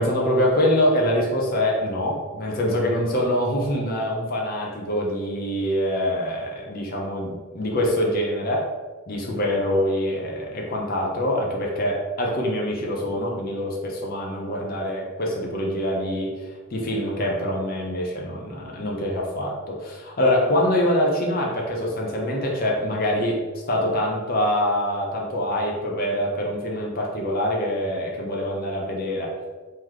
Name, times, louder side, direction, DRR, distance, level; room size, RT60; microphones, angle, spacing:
voice 1, 0.0-8.7 9.1-23.4 23.7-29.3, left 1 dB, 40° left, -1 dB, 0.6 m, -24 dB
3.1 x 2.9 x 3.8 m, 1.4 s
head